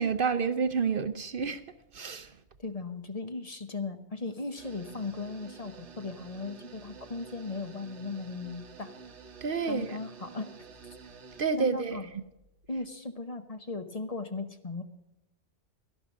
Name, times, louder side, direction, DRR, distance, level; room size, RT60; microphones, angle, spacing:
voice 1, 0.0-1.6 1.9-2.3 9.4-10.0 11.4-12.0, right 5 dB, 55° right, 0.8 m, -29 dB
voice 2, 2.6-8.9 9.7-10.5 11.6-12.1 12.7-14.8, left 3 dB, 35° left, 1.1 m, -37 dB
sound 1, 4.6-11.4, right 5 dB, 85° right, 1.4 m, -49 dB
12.5 x 11.5 x 6.3 m
omnidirectional pair, 1.2 m